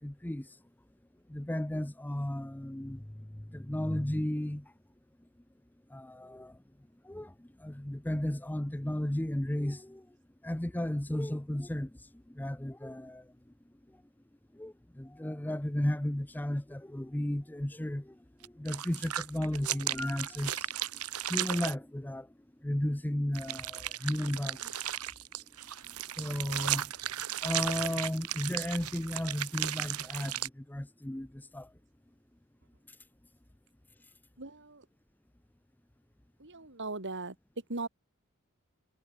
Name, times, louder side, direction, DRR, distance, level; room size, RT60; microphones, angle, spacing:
voice 1, 0.0-0.6 1.3-4.7 5.9-6.6 7.0-10.2 10.4-13.3 13.9-14.0 14.5-20.7 21.3-22.3 22.6-25.1 26.2-26.9 27.4-31.7, left 1 dB, 10° left, 0.6 m, -34 dB
sound 1, 18.4-21.8 23.4-30.5, right 12 dB, 85° right, 1.5 m, -35 dB
voice 2, 34.4-34.8 36.4-37.3 37.7-37.9, right 3 dB, 55° right, 3.1 m, -38 dB
head